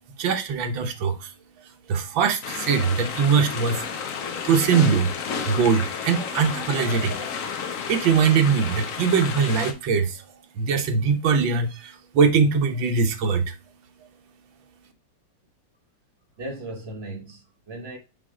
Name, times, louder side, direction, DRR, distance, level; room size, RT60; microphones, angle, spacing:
voice 1, 0.2-1.3 1.9-3.9 4.4-5.1 5.5-7.2 7.9-10.2 10.6-13.6, right 6 dB, 85° right, 1.7 m, -22 dB
sound 1, 2.4-9.7, left 6 dB, 55° left, 1.0 m, -31 dB
voice 2, 16.4-18.0, right 1 dB, 35° right, 1.4 m, -36 dB
7.5 x 3.5 x 3.7 m
omnidirectional pair, 2.1 m